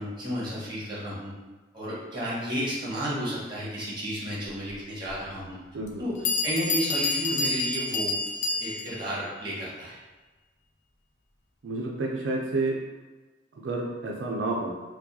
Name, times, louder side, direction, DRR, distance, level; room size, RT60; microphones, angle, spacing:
voice 1, 0.0-1.3 1.7-5.6 6.0-8.2 8.6-10.0, equal, 25° right, -7 dB, 1.2 m, -32 dB
Bell, 5.1-5.2 5.9-6.0 6.2-9.1, left 3 dB, 40° left, 0.4 m, -28 dB
voice 2, 5.7-6.0 11.6-12.8 13.6-14.7, right 2 dB, 75° right, -1 dB, 0.4 m, -29 dB
4.5 x 2.2 x 2.7 m, 1.2 s
head